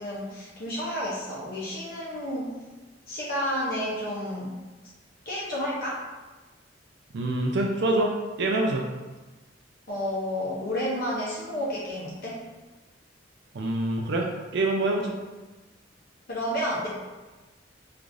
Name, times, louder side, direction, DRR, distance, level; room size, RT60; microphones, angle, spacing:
voice 1, 0.0-2.6 3.1-4.5 5.3-6.1 9.9-12.4 16.3-16.9, equal, 55° left, -6 dB, 0.6 m, -31 dB
voice 2, 7.1-8.1 8.4-8.8 13.5-14.3 14.5-15.2, right 2 dB, 65° right, 1 dB, 0.4 m, -25 dB
4.7 x 2.5 x 2.5 m, 1.2 s
head